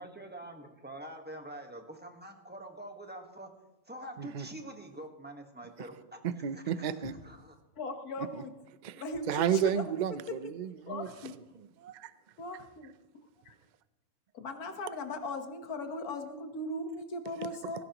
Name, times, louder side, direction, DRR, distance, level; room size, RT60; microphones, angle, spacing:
voice 1, 0.0-3.5 3.9-6.2 6.5-6.9 7.2-7.5, right 1 dB, 5° right, 4 dB, 1.3 m, -45 dB
voice 2, 6.2-7.1 8.8-11.1 11.8-12.1, right 9 dB, 65° right, 13 dB, 0.4 m, -32 dB
voice 3, 7.8-8.6 9.0-9.8 10.3-10.4 10.9-11.4 12.4-12.6 13.5-13.6 14.3-17.8, left 2 dB, 85° left, 6 dB, 1.8 m, -38 dB
18.0 x 16.0 x 3.0 m, 1.0 s
omnidirectional pair, 1.5 m